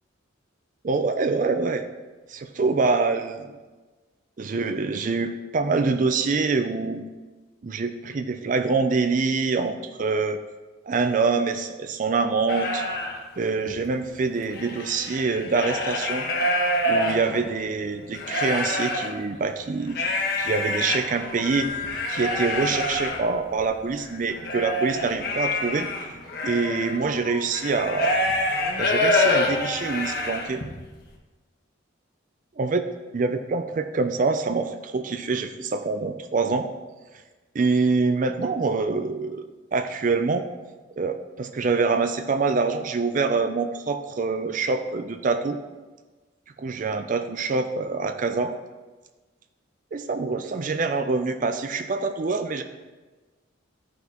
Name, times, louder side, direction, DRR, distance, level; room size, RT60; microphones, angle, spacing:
voice 1, 0.8-1.8 2.3-3.6 4.4-7.1 7.6-10.4 10.9-12.8 13.4-16.3 16.9-20.0 20.4-21.7 22.1-25.9 26.4-28.2 28.8-30.6 32.6-32.9 33.1-36.7 37.5-39.4 39.7-40.4 41.0-45.6 46.6-48.5 49.9-52.6, right 4 dB, 40° right, 7 dB, 0.4 m, -25 dB
sound 1, 12.5-13.2 13.7-13.8 14.0-17.6 18.1-19.1 19.9-30.7, left 1 dB, 50° left, 1.3 m, -26 dB
13.0 x 5.8 x 3.0 m, 1.3 s
head